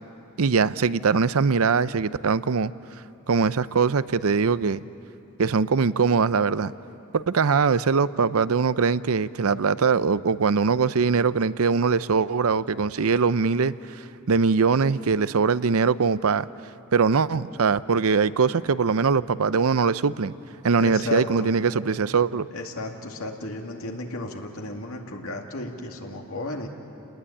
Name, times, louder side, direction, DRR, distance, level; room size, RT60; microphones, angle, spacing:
voice 1, 0.4-2.7 3.3-4.8 5.4-6.7 7.1-16.5 16.9-20.3 20.6-22.5, right 5 dB, 75° right, 16 dB, 0.6 m, -22 dB
voice 2, 20.8-21.5 22.5-26.7, left 2 dB, 75° left, 1 dB, 2.3 m, -34 dB
29.5 x 20.0 x 9.9 m, 2.8 s
head